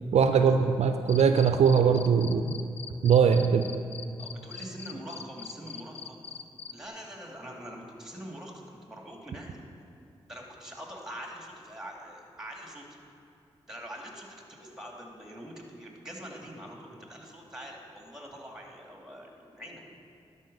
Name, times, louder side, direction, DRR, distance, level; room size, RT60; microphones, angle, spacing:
voice 1, 0.1-2.5 3.0-3.7, right 6 dB, 70° right, 8 dB, 0.4 m, -21 dB
Cricket, 1.1-6.7, left 7 dB, 60° left, 0.5 m, -41 dB
voice 2, 4.2-6.2 6.7-9.6 10.3-13.0 13.7-14.3 14.6-19.9, equal, 5° right, 0 dB, 2.4 m, -44 dB
12.0 x 5.5 x 5.4 m, 2.7 s
supercardioid pair, 40°, 12 cm